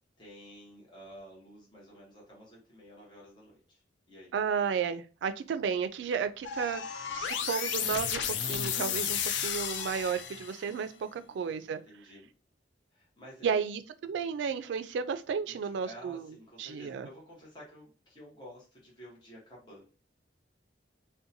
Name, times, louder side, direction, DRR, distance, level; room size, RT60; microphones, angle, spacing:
voice 1, 0.2-4.4 6.5-7.2 11.2-12.3 12.9-13.6 15.5-19.8, equal, 25° left, -4 dB, 0.8 m, -52 dB
voice 2, 4.3-6.8 7.1-11.8 13.4-16.2 16.6-17.1, right 6 dB, 80° right, 11 dB, 0.3 m, -33 dB
sound 1, 6.4-10.7, left 8 dB, 80° left, 0.3 m, -33 dB
2.6 x 2.1 x 2.6 m, 0.37 s
head